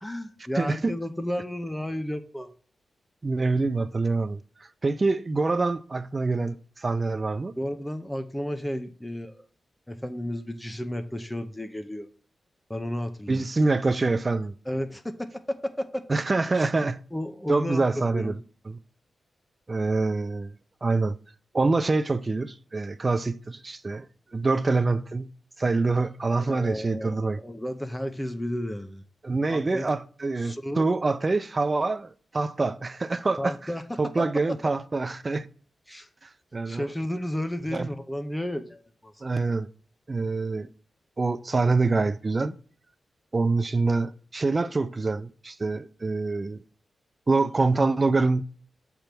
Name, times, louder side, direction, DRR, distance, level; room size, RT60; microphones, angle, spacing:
voice 1, 0.0-2.5 7.6-9.4 9.9-12.1 12.7-13.5 14.7-16.0 16.5-16.7 17.1-18.4 26.4-29.0 29.5-29.9 30.4-30.8 33.4-33.8 34.2-34.3 35.9-36.1 36.7-39.1, equal, 5° left, 0.8 m, -32 dB
voice 2, 0.5-0.9 3.2-4.4 4.8-7.5 13.3-14.5 16.1-17.0 17.5-18.4 18.7-18.8 19.7-20.5 20.8-21.2 21.5-24.1 24.3-25.3 25.6-27.4 29.2-33.6 34.0-35.5 36.2-36.9 37.7-37.9 39.2-39.7 40.1-40.7 41.2-42.5 43.3-46.6 47.3-48.4, right 3 dB, 30° right, 0.4 m, -25 dB
7.7 x 3.5 x 5.9 m
wide cardioid pair, 115°, 0 cm